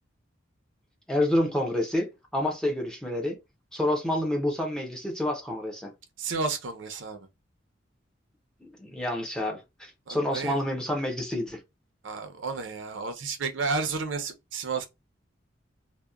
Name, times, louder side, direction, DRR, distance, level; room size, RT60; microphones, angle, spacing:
voice 1, 1.1-3.4 3.7-5.9 8.6-11.6, left 1 dB, 5° left, 0.5 m, -28 dB
voice 2, 6.2-7.3 10.1-10.6 12.0-14.9, right 4 dB, 90° right, 0.6 m, -32 dB
2.8 x 2.1 x 2.3 m
head